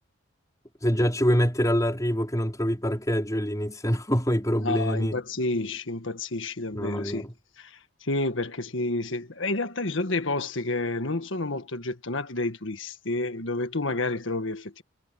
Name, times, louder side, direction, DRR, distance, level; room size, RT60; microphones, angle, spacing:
voice 1, 0.8-5.2 6.7-7.3, equal, 15° left, 5.1 m, -25 dB
voice 2, 4.6-7.3 7.6-14.8, left 2 dB, 70° left, 1.7 m, -30 dB
head